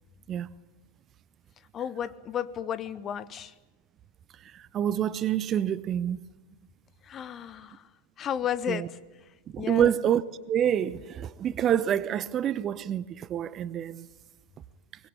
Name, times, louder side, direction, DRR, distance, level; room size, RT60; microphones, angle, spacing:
voice 1, 1.7-3.5 7.0-7.8 8.2-9.0 9.6-10.0, left 9 dB, 25° left, 0.9 m, -33 dB
voice 2, 4.5-6.2 8.7-8.9 9.5-14.1, right 10 dB, 30° right, 0.8 m, -27 dB
23.5 x 20.5 x 8.9 m
figure-of-eight pair, 90°, 0 cm